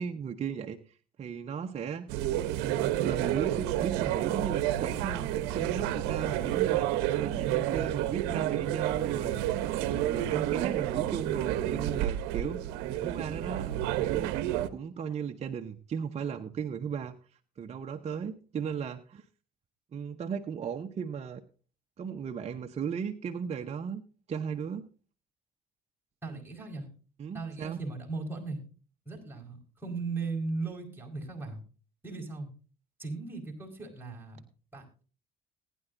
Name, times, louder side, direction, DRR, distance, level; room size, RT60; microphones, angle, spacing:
voice 1, 0.0-2.1 2.6-6.9 7.2-12.6 12.9-13.7 14.0-14.4 14.7-17.2 17.6-19.2 19.9-21.4 22.0-24.0 24.3-24.9 26.3-26.4 27.2-27.8, right 7 dB, 40° right, 4 dB, 0.9 m, -36 dB
sound 1, 2.1-14.7, right 13 dB, 80° right, 0.9 m, -30 dB
voice 2, 26.2-26.9 27.3-28.6 29.0-31.6 32.0-32.5 33.0-34.4 34.7-35.0, right 3 dB, 10° right, -1 dB, 4.7 m, -37 dB
20.0 x 10.0 x 2.6 m, 0.37 s
supercardioid pair, 80°, 17 cm